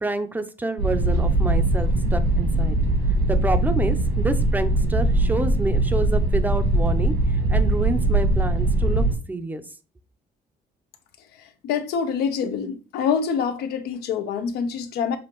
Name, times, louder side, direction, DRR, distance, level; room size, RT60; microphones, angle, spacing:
voice 1, 0.0-2.8 3.3-9.6, right 2 dB, 10° right, 0.5 m, -28 dB
sound 1, 0.8-9.1, right 2 dB, 85° right, 1.6 m, -21 dB
voice 2, 11.4-15.2, left 6 dB, 90° left, 0.7 m, -26 dB
6.3 x 2.5 x 2.9 m
cardioid pair, 130°, 16 cm